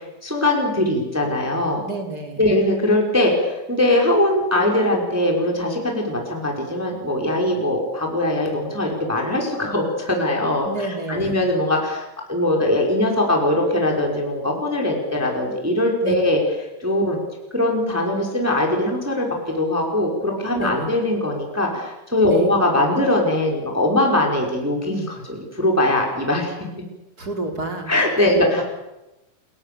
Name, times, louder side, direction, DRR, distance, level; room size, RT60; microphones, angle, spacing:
voice 1, 0.2-1.8 2.4-12.0 12.3-16.4 16.8-17.2 17.5-26.5 27.9-28.6, left 1 dB, 5° right, 1 dB, 4.7 m, -21 dB
voice 2, 1.8-2.5 10.6-11.4 16.0-16.1 20.6-20.9 22.3-22.5 27.2-27.9 28.2-28.6, right 2 dB, 25° right, 3 dB, 2.8 m, -29 dB
28.5 x 22.5 x 7.1 m, 0.98 s
omnidirectional pair, 5.9 m